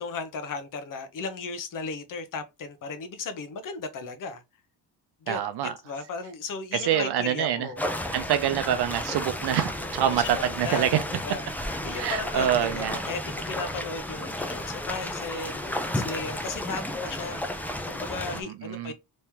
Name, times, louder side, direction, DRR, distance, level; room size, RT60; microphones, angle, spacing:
voice 1, 0.0-4.4 5.2-5.4 5.9-7.9 10.0-11.5 11.8-18.9, left 4 dB, 50° left, 0.8 m, -36 dB
voice 2, 5.3-5.8 6.7-7.7 8.0-11.0 11.9-13.0 18.3-18.9, right 10 dB, 70° right, 0.6 m, -26 dB
sound 1, 7.8-18.4, left 1 dB, 5° left, 0.3 m, -33 dB
3.1 x 2.8 x 3.5 m
cardioid pair, 145°, 41 cm